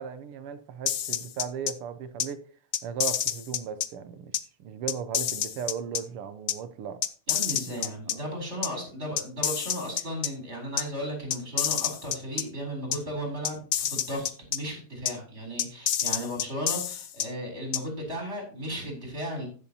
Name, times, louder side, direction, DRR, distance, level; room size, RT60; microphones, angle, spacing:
voice 1, 0.0-2.4 2.8-4.3 4.6-7.0 7.7-8.3, right 7 dB, 90° right, 1.8 m, -37 dB
sound 1, 0.9-1.7 2.2-2.3 2.7-3.9 4.3-4.4 4.9-6.0 6.5-6.6 7.0-8.1 8.6-8.7 9.2-10.3 10.8-10.9 11.3-12.4 12.9-13.0 13.4-14.6 15.1-15.2 15.6-17.3 17.7-17.8, left 10 dB, 80° left, 0.7 m, -28 dB
voice 2, 7.3-19.5, equal, 30° right, 4.1 m, -35 dB
15.5 x 7.0 x 2.8 m
omnidirectional pair, 2.4 m